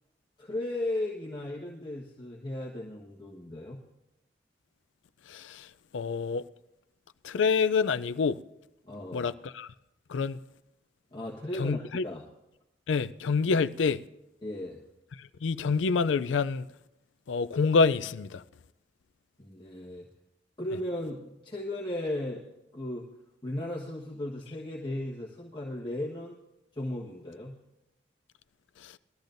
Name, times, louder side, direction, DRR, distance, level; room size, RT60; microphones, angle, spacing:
voice 1, 0.4-3.8 8.8-9.3 11.1-12.3 14.4-14.8 19.4-20.1 20.6-22.4 22.7-23.1 23.4-26.4 26.7-27.6, left 1 dB, 25° left, 1.4 m, -36 dB
voice 2, 5.3-5.7 5.9-6.4 7.2-8.4 9.1-9.7 10.1-10.4 11.6-12.0 12.9-14.0 15.2-16.7 17.3-18.4 28.8-29.0, left 5 dB, 90° left, 0.4 m, -27 dB
21.5 x 13.5 x 2.6 m
head